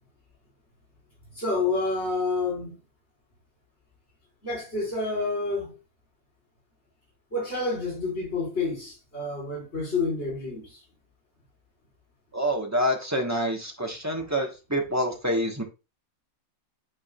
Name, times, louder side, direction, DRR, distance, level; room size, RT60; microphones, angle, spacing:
voice 1, 1.3-2.8 4.4-5.7 7.3-10.8 14.1-14.2, left 3 dB, 50° left, 4.7 m, -29 dB
voice 2, 12.3-15.6, equal, 15° right, 1.0 m, -27 dB
8.6 x 4.7 x 2.3 m
omnidirectional pair, 1.5 m